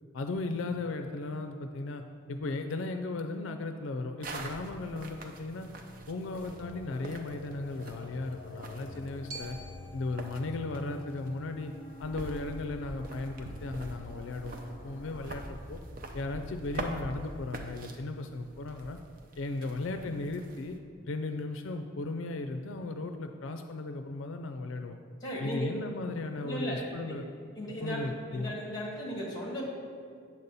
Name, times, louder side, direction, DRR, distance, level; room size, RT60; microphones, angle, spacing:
voice 1, 0.1-2.0 2.3-5.7 6.1-9.6 9.9-11.7 12.0-15.8 16.1-19.0 19.4-20.8 21.1-25.0 25.4-27.2 27.8-28.5, left 2 dB, 75° left, 6 dB, 0.4 m, -36 dB
sound 1, 4.2-20.8, right 1 dB, 45° right, 0.6 m, -44 dB
sound 2, 6.0-15.3, left 2 dB, 50° left, 0.7 m, -49 dB
Glockenspiel, 9.3-13.4, right 2 dB, 85° right, 1.0 m, -51 dB
voice 2, 25.2-25.7 26.4-27.1 27.6-28.0 28.3-29.6, equal, 20° left, -3 dB, 1.8 m, -36 dB
8.4 x 4.1 x 6.7 m, 2.3 s
head